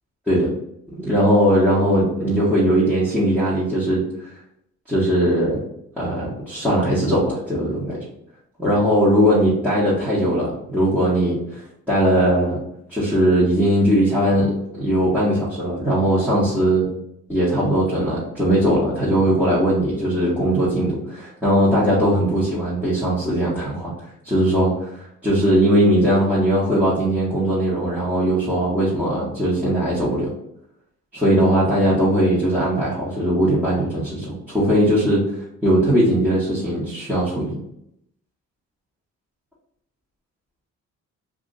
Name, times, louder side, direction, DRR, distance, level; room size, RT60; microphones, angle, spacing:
voice 1, 0.9-4.0 4.9-5.6 6.0-8.0 8.6-12.6 12.9-16.9 17.3-23.9 24.2-30.3 31.1-35.2 35.6-37.6, equal, 5° right, -11 dB, 1.3 m, -19 dB
2.7 x 2.4 x 4.0 m, 0.77 s
cardioid pair, 90°, 30 cm